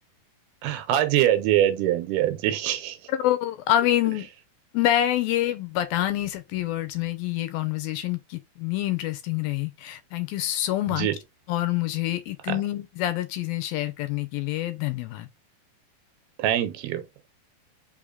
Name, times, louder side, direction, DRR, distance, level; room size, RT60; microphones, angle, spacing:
voice 1, 0.6-3.0 10.9-11.2 12.5-12.6 16.4-17.0, right 12 dB, 80° right, 2.7 m, -23 dB
voice 2, 3.1-4.3 4.7-11.1 11.5-15.3, left 13 dB, 75° left, 2.4 m, -26 dB
5.6 x 3.6 x 2.3 m
omnidirectional pair, 4.5 m